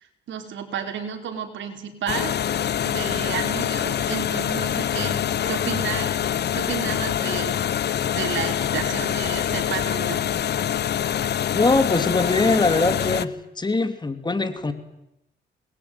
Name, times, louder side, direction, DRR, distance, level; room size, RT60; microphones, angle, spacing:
voice 1, 0.3-7.7 8.1-10.3, right 7 dB, 70° right, 5 dB, 4.7 m, -32 dB
sound 1, 2.1-13.3, left 10 dB, 55° left, 1.1 m, -25 dB
voice 2, 11.5-14.7, left 3 dB, 20° left, 10 dB, 2.9 m, -22 dB
27.0 x 20.5 x 9.6 m, 0.85 s
cardioid pair, 90°, 20 cm